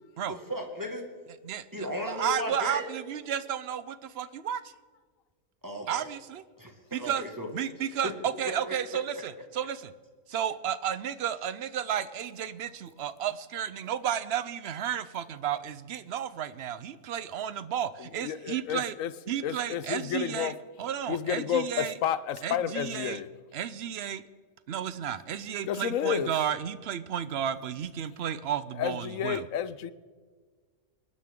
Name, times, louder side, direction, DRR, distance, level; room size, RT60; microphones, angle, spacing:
voice 1, 0.3-1.1 1.7-2.9 5.6-6.1 6.6-7.5 8.0-8.1 8.7-8.8, left 1 dB, 15° right, 2 dB, 1.8 m, -35 dB
voice 2, 1.4-4.6 5.9-6.4 6.9-7.2 7.5-9.9 10.3-18.9 19.3-22.0 22.4-23.2 23.5-24.2 24.7-29.5, right 9 dB, 60° right, 15 dB, 0.7 m, -32 dB
voice 3, 18.2-19.1 19.4-20.5 21.1-23.3 25.6-26.3 28.8-29.9, left 9 dB, 70° left, 15 dB, 1.0 m, -30 dB
25.0 x 11.0 x 3.7 m, 1.6 s
omnidirectional pair, 1.5 m